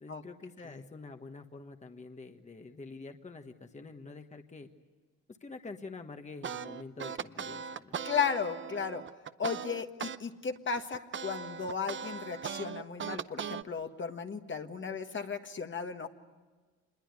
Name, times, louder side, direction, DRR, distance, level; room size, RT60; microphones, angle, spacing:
voice 1, 0.0-4.7 5.4-8.0, left 3 dB, 25° left, 6 dB, 1.4 m, -46 dB
sound 1, 6.4-10.2 10.6-13.6, right 7 dB, 40° right, 0.8 m, -39 dB
voice 2, 8.0-9.0 9.4-16.1, left 6 dB, 40° left, 6 dB, 1.6 m, -35 dB
26.5 x 21.5 x 9.6 m, 1.3 s
cardioid pair, 90°, 30 cm